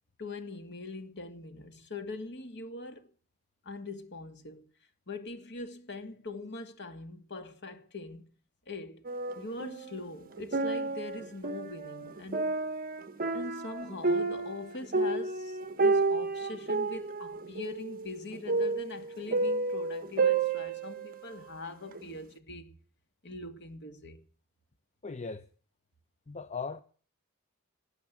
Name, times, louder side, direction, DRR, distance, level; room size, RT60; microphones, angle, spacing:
voice 1, 0.2-3.1 3.6-4.6 5.1-8.3 8.7-9.0 9.3-12.5 13.3-22.7 23.2-24.2, left 2 dB, 55° left, 2.5 m, -42 dB
sound 1, 9.1-10.0 10.3-21.4 21.9-22.0, right 3 dB, 45° right, 1.1 m, -31 dB
voice 2, 25.0-25.4 26.3-26.8, left 4 dB, 35° left, 0.7 m, -38 dB
19.0 x 8.3 x 8.3 m
head